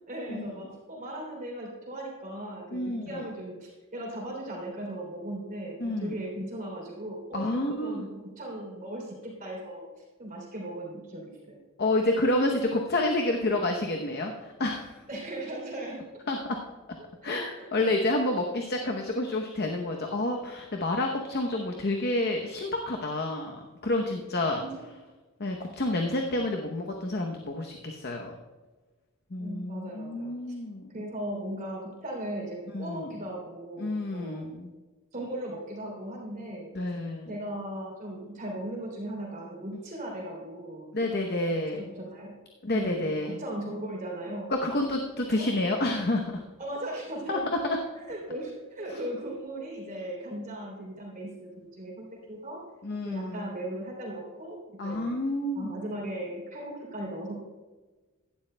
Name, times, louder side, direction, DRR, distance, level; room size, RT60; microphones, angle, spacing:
voice 1, 0.1-8.1 8.4-11.6 15.1-16.0 17.2-17.7 24.6-24.9 29.4-30.6 30.9-34.5 35.1-36.7 37.3-40.9 41.5-42.3 42.7-44.5 45.2-45.5 46.6-47.5 48.0-52.6 53.0-55.2 55.5-57.3, right 1 dB, 35° right, -2 dB, 3.1 m, -38 dB
voice 2, 2.7-3.3 5.8-6.1 7.3-8.1 11.8-15.0 16.3-16.6 17.2-24.6 25.4-28.4 29.3-30.8 32.7-33.1 33.8-34.7 36.7-37.3 40.9-41.8 42.6-43.4 44.5-46.4 47.3-47.8 48.9-49.0 52.8-53.5 54.8-55.7, left 2 dB, 50° left, 2 dB, 0.8 m, -29 dB
16.5 x 11.5 x 2.2 m, 1.3 s
head